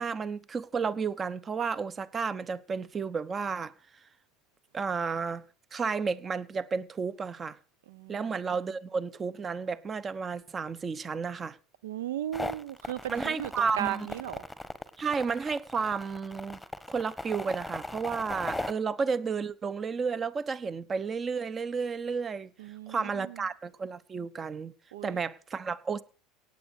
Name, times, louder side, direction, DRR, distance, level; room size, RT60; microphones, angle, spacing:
voice 1, 0.0-3.7 4.7-5.4 5.7-7.6 8.1-11.6 13.1-14.1 15.0-16.6 16.9-22.5 22.9-24.7 25.0-26.0, right 5 dB, 30° right, 1.0 m, -32 dB
voice 2, 7.9-8.3 11.8-14.4 22.6-23.4 24.9-25.2, right 12 dB, 75° right, 0.6 m, -36 dB
sound 1, 12.3-18.7, left 2 dB, 5° left, 1.4 m, -38 dB
17.5 x 8.3 x 6.6 m
hypercardioid pair, 80°, 0 cm